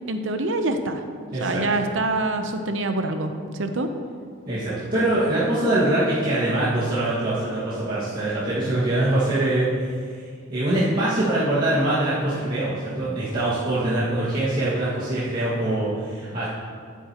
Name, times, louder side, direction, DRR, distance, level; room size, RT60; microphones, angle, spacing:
voice 1, 0.1-1.0 1.4-3.9, right 2 dB, 70° right, 7 dB, 0.7 m, -25 dB
voice 2, 1.3-1.6 4.5-10.2 10.5-16.5, right 1 dB, 45° right, -12 dB, 1.9 m, -23 dB
11.5 x 9.2 x 3.0 m, 2.1 s
head